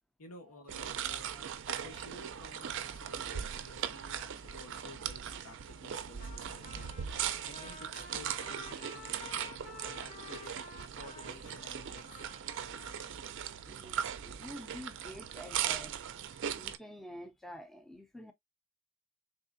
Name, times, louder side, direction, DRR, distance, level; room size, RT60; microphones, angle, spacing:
voice 1, 0.2-1.3 1.6-6.9 7.4-9.4 9.8-12.3, left 2 dB, 90° left, 1.3 m, -53 dB
sound 1, 0.7-16.8, right 9 dB, 55° right, 0.4 m, -39 dB
voice 2, 1.7-2.0 13.6-18.3, equal, ahead, 0.4 m, -49 dB
Trumpet, 6.2-13.3, left 4 dB, 35° left, 0.7 m, -52 dB
3.6 x 3.2 x 2.5 m
head